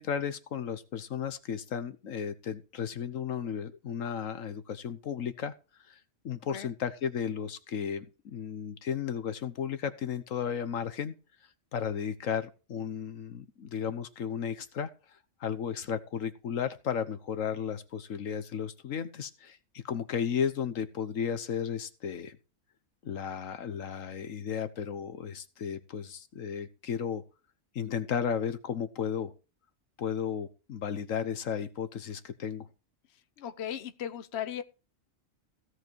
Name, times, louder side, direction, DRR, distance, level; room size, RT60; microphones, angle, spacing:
voice 1, 0.0-5.5 5.9-6.0 6.2-11.1 11.7-14.9 15.4-22.4 23.0-27.2 27.7-29.3 30.0-32.7, left 7 dB, 80° left, 1.4 m, -34 dB
voice 2, 33.4-34.6, left 9 dB, 55° left, 1.2 m, -36 dB
16.0 x 8.0 x 4.6 m
omnidirectional pair, 1.4 m